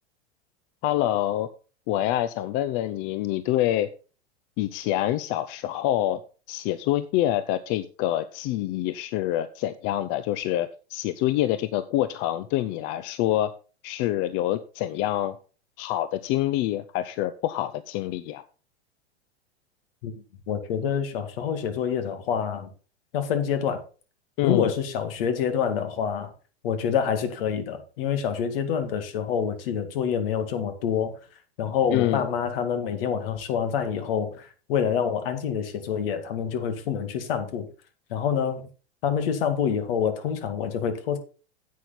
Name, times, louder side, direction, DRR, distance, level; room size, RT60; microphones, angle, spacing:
voice 1, 0.8-1.5 1.9-3.9 4.6-6.2 6.5-13.5 13.8-15.4 15.8-18.4 24.4-24.7 31.9-32.3, left 13 dB, 40° left, 0.6 m, -26 dB
voice 2, 20.5-22.7 23.1-23.8 24.4-26.3 26.6-31.1 31.6-37.7 38.1-38.7 39.0-41.2, left 7 dB, 60° left, 2.2 m, -27 dB
10.0 x 8.4 x 4.0 m
hypercardioid pair, 100°, 33 cm